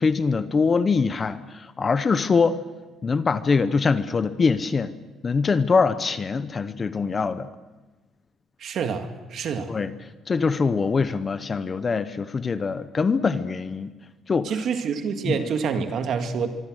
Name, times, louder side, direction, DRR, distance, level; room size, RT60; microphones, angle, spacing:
voice 1, 0.0-2.6 3.0-5.0 5.2-7.5 9.7-9.9 10.3-13.9 14.3-14.5 15.3-15.4, left 5 dB, 25° left, 13 dB, 0.8 m, -23 dB
voice 2, 8.6-9.7 14.4-16.5, right 6 dB, 50° right, 6 dB, 2.1 m, -27 dB
25.0 x 23.5 x 6.4 m, 1.2 s
cardioid pair, 170°, 0 cm